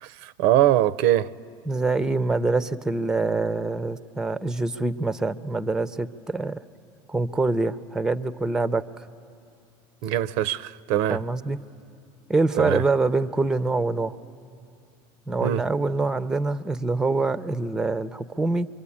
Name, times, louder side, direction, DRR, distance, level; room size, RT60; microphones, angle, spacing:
voice 1, 0.0-1.3 10.0-11.2 12.6-12.8 15.4-15.6, right 12 dB, 65° right, 0.5 m, -22 dB
voice 2, 1.7-6.6 7.1-9.0 11.1-11.6 12.3-14.1 15.3-18.7, right 3 dB, 5° right, 0.5 m, -25 dB
25.0 x 23.5 x 8.6 m
supercardioid pair, 120°, 11 cm